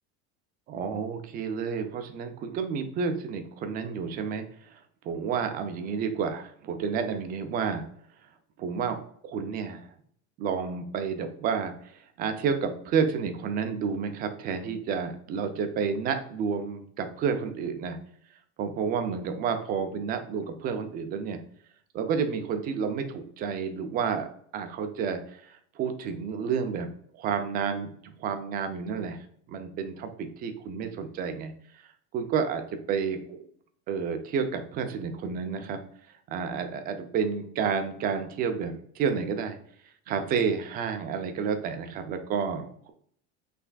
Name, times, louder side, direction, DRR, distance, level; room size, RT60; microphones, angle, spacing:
voice 1, 0.7-4.8 5.0-7.8 8.6-9.0 9.2-9.8 10.4-18.0 18.6-21.4 21.9-24.3 24.5-29.2 29.5-31.5 32.1-33.4 33.9-35.8 36.3-39.6 40.1-42.9, right 6 dB, 25° right, 7 dB, 0.4 m, -30 dB
5.7 x 3.3 x 2.3 m, 0.64 s
cardioid pair, 175°, 34 cm